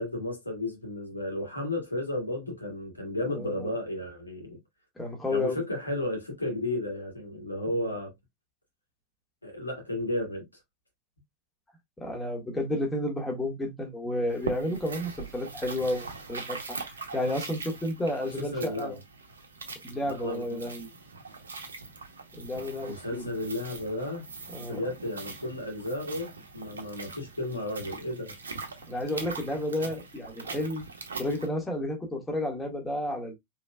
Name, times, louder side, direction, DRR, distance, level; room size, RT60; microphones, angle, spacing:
voice 1, 0.0-4.6 5.3-8.1 9.4-10.5 18.4-19.0 20.0-20.6 22.9-24.2 24.6-28.4, left 1 dB, 80° left, 1.9 m, -33 dB
voice 2, 3.3-3.7 5.0-5.6 7.7-7.8 12.0-16.8 17.1-19.0 19.8-20.9 22.4-23.3 24.5-24.8 28.9-30.8 31.2-33.3, left 1 dB, 10° left, 1.6 m, -31 dB
sound 1, 14.3-31.5, right 4 dB, 70° right, 0.9 m, -42 dB
5.0 x 3.5 x 2.3 m
figure-of-eight pair, 90°, 0 cm